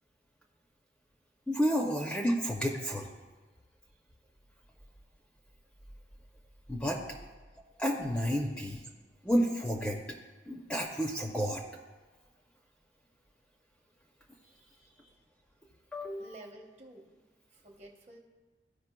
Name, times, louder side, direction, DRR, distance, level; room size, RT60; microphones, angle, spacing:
voice 1, 1.5-3.1 6.7-7.0 7.8-8.8 9.2-10.0 10.5-11.6 15.9-16.3, equal, 5° left, 1 dB, 0.5 m, -30 dB
voice 2, 14.4-15.2 16.2-17.2 17.5-18.2, right 1 dB, 35° right, 1 dB, 0.9 m, -52 dB
14.5 x 5.1 x 2.2 m, 1.3 s
head